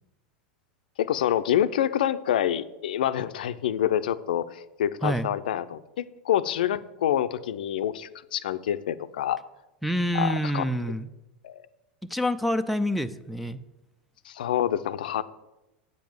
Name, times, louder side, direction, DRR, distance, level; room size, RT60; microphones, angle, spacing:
voice 1, 1.0-9.4 10.1-10.7 11.4-11.7 14.3-15.2, left 11 dB, 75° left, 13 dB, 0.5 m, -27 dB
voice 2, 9.8-11.1 12.1-13.6, equal, ahead, 7 dB, 0.5 m, -27 dB
8.3 x 5.3 x 7.8 m, 0.96 s
hypercardioid pair, 95°, 5 cm